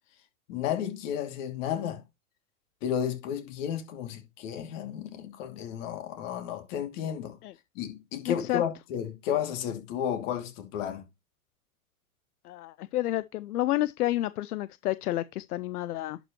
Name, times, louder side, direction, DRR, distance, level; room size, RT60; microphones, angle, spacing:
voice 1, 0.5-2.0 2.8-7.4 7.7-11.0, left 9 dB, 55° left, 2.6 m, -32 dB
voice 2, 8.3-8.6 12.4-16.2, left 15 dB, 80° left, 0.5 m, -30 dB
11.0 x 5.2 x 3.0 m
hypercardioid pair, 110°, 44 cm